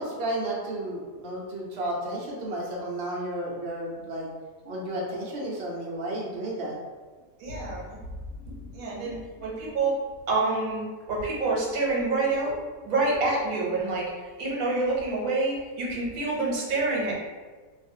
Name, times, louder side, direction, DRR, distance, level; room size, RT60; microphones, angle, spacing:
voice 1, 0.0-4.3 4.6-6.8, right 1 dB, 60° right, -4 dB, 0.8 m, -32 dB
voice 2, 7.4-8.0 8.5-10.0 10.3-12.5 12.8-14.0 14.4-17.1, right 3 dB, 75° right, -4 dB, 1.2 m, -27 dB
2.6 x 2.4 x 2.6 m, 1.4 s
omnidirectional pair, 1.5 m